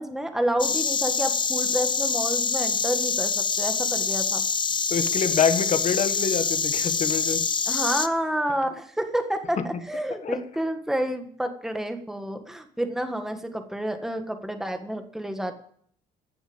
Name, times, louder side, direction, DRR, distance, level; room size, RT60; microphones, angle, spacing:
voice 1, 0.0-4.4 7.7-15.5, right 1 dB, ahead, 6 dB, 1.6 m, -29 dB
Insect, 0.6-8.1, left 5 dB, 30° left, 0.9 m, -25 dB
voice 2, 4.9-7.4 10.2-10.4, left 6 dB, 45° left, 9 dB, 1.5 m, -25 dB
15.5 x 7.2 x 8.8 m, 0.62 s
cardioid pair, 110°, 17 cm